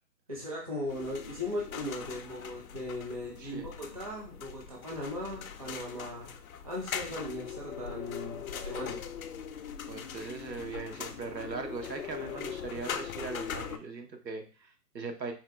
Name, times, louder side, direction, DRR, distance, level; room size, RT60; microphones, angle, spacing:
voice 1, 0.3-6.3 6.6-9.0, left 1 dB, 25° right, -2 dB, 0.5 m, -38 dB
sound 1, 0.9-13.8, left 8 dB, 60° left, 0.5 m, -41 dB
voice 2, 9.9-15.3, right 4 dB, 85° right, 4 dB, 1.1 m, -40 dB
4.6 x 2.3 x 3.3 m, 0.36 s
hypercardioid pair, 150°, 49 cm